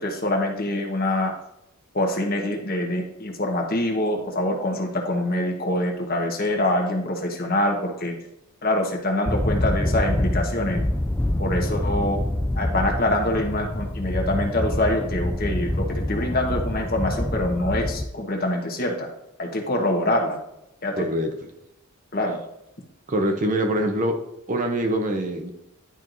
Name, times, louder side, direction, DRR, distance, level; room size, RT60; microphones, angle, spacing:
voice 1, 0.0-1.3 1.9-8.1 8.6-10.8 11.4-12.2 12.6-19.1 19.4-20.4 20.8-21.1 22.1-22.4, left 1 dB, 40° left, 2 dB, 1.1 m, -25 dB
sound 1, 9.3-18.1, left 1 dB, 10° left, 0.3 m, -26 dB
voice 2, 21.0-21.5 23.1-24.2 24.5-25.5, right 1 dB, 35° right, 5 dB, 0.7 m, -24 dB
10.5 x 4.5 x 2.6 m, 0.85 s
head